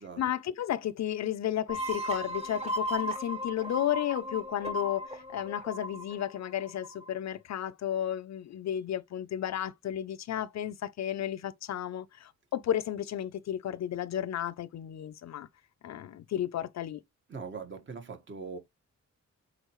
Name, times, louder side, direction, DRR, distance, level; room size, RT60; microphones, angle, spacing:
voice 1, 0.2-15.5 15.8-17.0, left 11 dB, 65° left, 0.5 m, -33 dB
sound 1, 1.7-7.1, equal, 20° right, 1.4 m, -36 dB
voice 2, 17.3-18.6, right 5 dB, 40° right, 1.4 m, -41 dB
8.0 x 4.3 x 3.0 m
wide cardioid pair, 180°, 29 cm